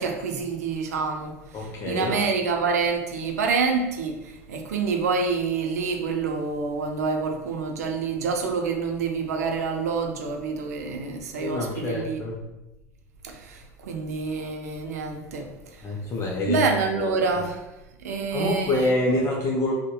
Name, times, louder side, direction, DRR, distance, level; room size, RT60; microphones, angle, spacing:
voice 1, 0.0-12.2 13.2-15.5 16.5-17.6 18.0-18.9, right 4 dB, 90° right, 4 dB, 0.4 m, -27 dB
voice 2, 1.5-2.2 11.4-12.4 15.8-16.6 16.9-17.4 18.3-19.7, left 2 dB, 35° left, -2 dB, 0.5 m, -26 dB
2.7 x 2.1 x 2.2 m, 0.96 s
hypercardioid pair, 95°, 8 cm